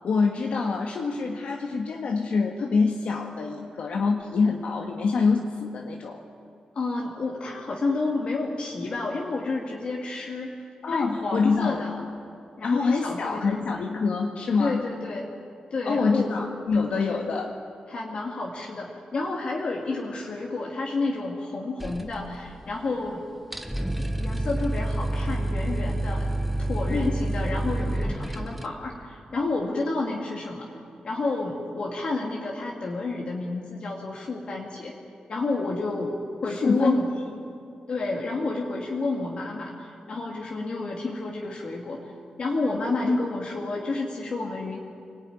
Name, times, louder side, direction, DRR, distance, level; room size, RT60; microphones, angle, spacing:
voice 1, 0.0-6.2 10.8-11.8 12.6-14.9 15.9-17.5 26.9-27.1 36.5-37.0 43.0-43.2, left 4 dB, 65° left, 1 dB, 1.7 m, -25 dB
voice 2, 6.7-12.0 12.6-13.5 14.6-15.2 15.7-16.3 16.9-17.3 17.9-23.2 24.0-26.3 26.6-30.7 31.0-35.0 35.3-37.1 37.9-42.1 42.4-44.8, left 3 dB, 45° left, -2 dB, 2.4 m, -30 dB
sound 1, 21.8-22.8 23.1-23.2 23.4-28.7, right 1 dB, 5° right, 1.1 m, -28 dB
25.0 x 19.5 x 9.6 m, 2.5 s
wide cardioid pair, 170°, 2 cm